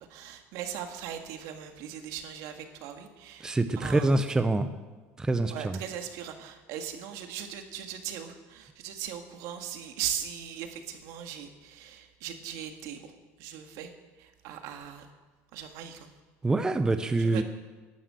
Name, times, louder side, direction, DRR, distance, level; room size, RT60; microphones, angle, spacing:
voice 1, 0.0-4.2 5.5-13.1 13.4-15.1 15.5-16.1 17.2-17.4, right 9 dB, 75° right, 6 dB, 1.7 m, -39 dB
voice 2, 3.4-4.7 5.2-5.8 16.4-17.4, right 2 dB, 10° right, 9 dB, 0.7 m, -26 dB
12.0 x 11.5 x 7.6 m, 1.3 s
cardioid pair, 135°, 6 cm